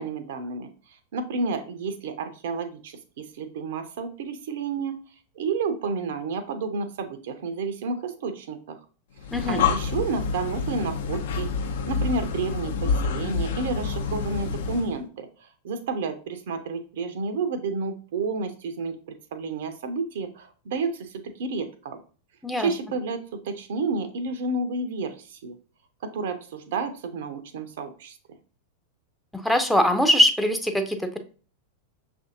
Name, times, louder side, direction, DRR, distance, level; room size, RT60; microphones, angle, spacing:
voice 1, 0.0-5.0 5.4-8.8 9.4-18.9 19.3-22.0 22.6-25.6 26.0-28.2, right 4 dB, 55° right, 9 dB, 0.5 m, -31 dB
Breathing, 9.2-15.0, left 5 dB, 55° left, 0.5 m, -28 dB
voice 2, 29.3-31.2, left 1 dB, ahead, 6 dB, 0.5 m, -22 dB
6.1 x 2.6 x 2.6 m, 0.38 s
figure-of-eight pair, 90°, 0 cm